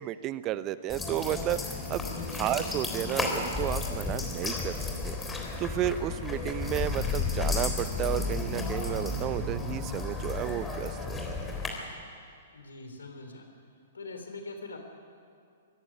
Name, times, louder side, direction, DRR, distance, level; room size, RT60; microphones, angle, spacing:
voice 1, 0.0-1.6 1.9-2.0 2.4-4.8 5.0-5.2 5.6-11.2, right 13 dB, 30° right, 15 dB, 0.8 m, -32 dB
sound 1, 0.9-11.7, left 3 dB, 10° left, 3.5 m, -33 dB
voice 2, 1.9-2.5 12.5-13.5 13.9-14.8, left 3 dB, 70° left, 6 dB, 3.6 m, -43 dB
24.5 x 14.5 x 9.6 m, 2.3 s
figure-of-eight pair, 110°, 0 cm